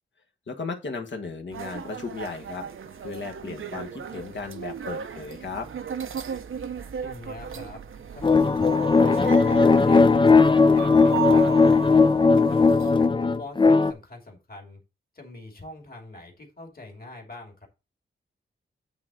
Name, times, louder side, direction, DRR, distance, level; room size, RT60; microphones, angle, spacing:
voice 1, 0.5-2.7 3.0-5.7, left 4 dB, 65° left, 3 dB, 1.4 m, -35 dB
sound 1, 1.5-13.1, right 8 dB, 90° right, 0.8 m, -36 dB
voice 2, 6.9-7.8 8.1-10.3 10.7-11.7 12.1-13.0 13.4-14.8 15.1-17.7, left 2 dB, 45° left, 2 dB, 2.6 m, -43 dB
sound 2, 8.2-13.9, left 4 dB, 25° left, 0.4 m, -18 dB
8.8 x 3.8 x 6.1 m, 0.28 s
wide cardioid pair, 115°, 20 cm